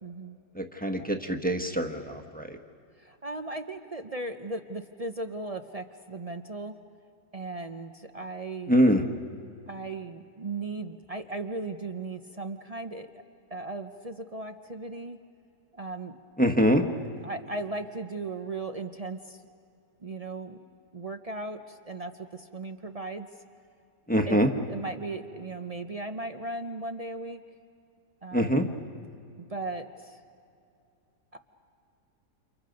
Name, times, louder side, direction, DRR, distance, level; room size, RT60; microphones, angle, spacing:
voice 1, 0.0-0.4 3.0-6.7 7.3-8.7 9.7-13.1 13.5-15.2 15.7-16.2 17.2-19.4 20.0-20.6 20.9-23.3 24.3-24.4 24.7-27.4 28.2-28.7 29.4-30.2 31.3-31.4, right 2 dB, 45° right, 7 dB, 0.4 m, -37 dB
voice 2, 0.5-2.6 8.7-9.0 16.4-16.8 24.1-24.5 28.3-28.7, equal, 5° left, 3 dB, 1.0 m, -24 dB
30.0 x 29.0 x 5.3 m, 2.5 s
omnidirectional pair, 1.8 m